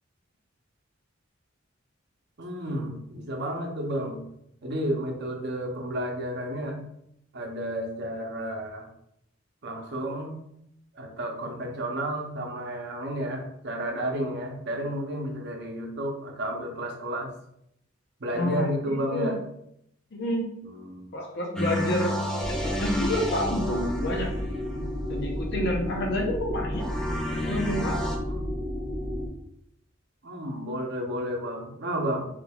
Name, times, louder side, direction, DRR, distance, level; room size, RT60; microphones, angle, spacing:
voice 1, 2.4-4.2 4.6-6.8 7.3-8.9 9.6-10.4 10.9-17.3 18.2-19.3 20.6-21.1 24.7-24.9 28.3-28.5 30.2-32.3, right 1 dB, 60° right, 2 dB, 0.7 m, -32 dB
voice 2, 18.3-19.3 20.1-20.5 21.1-24.3 25.1-26.8 27.4-28.0, left 1 dB, 60° left, 0 dB, 0.7 m, -29 dB
sound 1, 21.6-24.8 26.7-28.2, left 1 dB, 5° left, 0.4 m, -31 dB
sound 2, 22.4-29.3, equal, 45° left, 1.2 m, -32 dB
3.4 x 3.2 x 2.3 m, 0.74 s
head